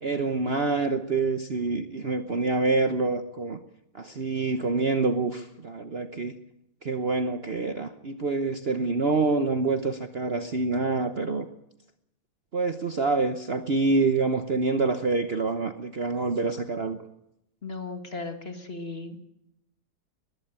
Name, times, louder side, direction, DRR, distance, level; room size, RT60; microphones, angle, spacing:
voice 1, 0.0-3.6 3.9-6.3 6.8-11.5 12.5-17.0, right 3 dB, 40° right, 8 dB, 1.0 m, -26 dB
voice 2, 17.6-19.2, left 3 dB, 35° left, 6 dB, 2.1 m, -36 dB
21.0 x 15.0 x 8.9 m, 0.82 s
omnidirectional pair, 1.9 m